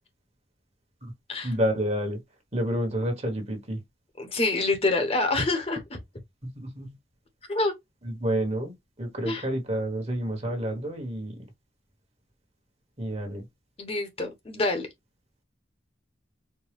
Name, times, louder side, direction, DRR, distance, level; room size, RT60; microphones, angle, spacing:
voice 1, 1.4-2.2 2.5-3.8 6.4-6.9 8.0-11.3 13.0-13.4, equal, 35° right, 1.3 m, -29 dB
voice 2, 4.2-6.0 7.5-7.7 9.2-9.5 13.8-14.9, left 2 dB, 35° left, 1.0 m, -26 dB
4.4 x 2.1 x 3.4 m
head